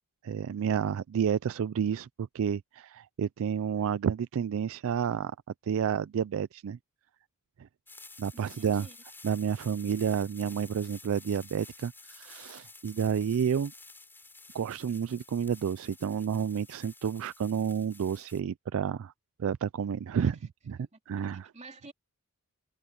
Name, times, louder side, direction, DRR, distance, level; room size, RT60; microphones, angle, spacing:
voice 1, 0.2-5.4 5.6-6.8 8.2-8.9 9.2-13.7 14.5-19.1 19.4-20.3 20.7-20.8 21.1-21.5, right 7 dB, 65° right, 0.3 m, -30 dB
sound 1, 7.9-18.4, left 3 dB, 10° left, 3.8 m, -51 dB
voice 2, 8.3-9.0 20.2-20.5 20.8-21.3 21.5-21.9, right 2 dB, 30° right, 2.4 m, -50 dB
head